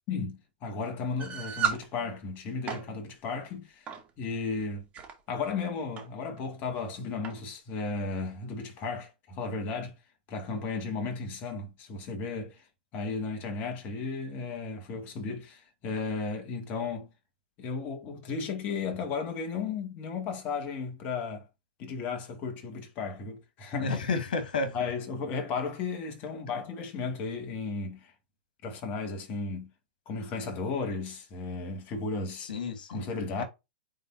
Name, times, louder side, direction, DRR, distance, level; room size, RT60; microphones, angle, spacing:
voice 1, 0.1-3.9 4.2-4.9 5.3-9.9 10.3-12.7 12.9-17.1 17.6-21.5 21.8-23.9 24.7-28.1 28.6-29.7 30.1-32.5 32.9-33.4, left 4 dB, 40° left, 2.2 m, -34 dB
sound 1, 1.2-1.8 2.5-2.8 3.9-4.1 4.7-5.1 6.0-6.1 6.4-6.5 7.2-7.4, right 7 dB, 25° right, 2.0 m, -32 dB
voice 2, 23.8-24.9 32.5-33.1 33.4-33.5, left 4 dB, 75° left, 2.3 m, -31 dB
8.9 x 3.9 x 2.7 m
hypercardioid pair, 120°, 5 cm